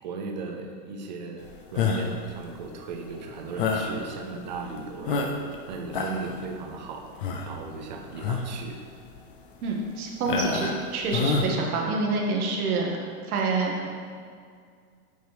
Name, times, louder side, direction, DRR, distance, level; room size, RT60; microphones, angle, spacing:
voice 1, 0.0-7.2 7.4-8.8, right 4 dB, 30° right, 3 dB, 0.4 m, -37 dB
sound 1, 1.8-2.2 3.6-4.0 4.6-4.7 5.1-5.6 5.9-6.4 7.2-7.6 8.1-8.5 9.1-9.2 10.2-10.8 11.1-11.5, left 5 dB, 40° left, 0.4 m, -27 dB
voice 2, 9.6-13.0 13.3-13.9, right 3 dB, 70° right, 0 dB, 1.3 m, -27 dB
8.0 x 3.0 x 4.8 m, 2.1 s
supercardioid pair, 160°, 45 cm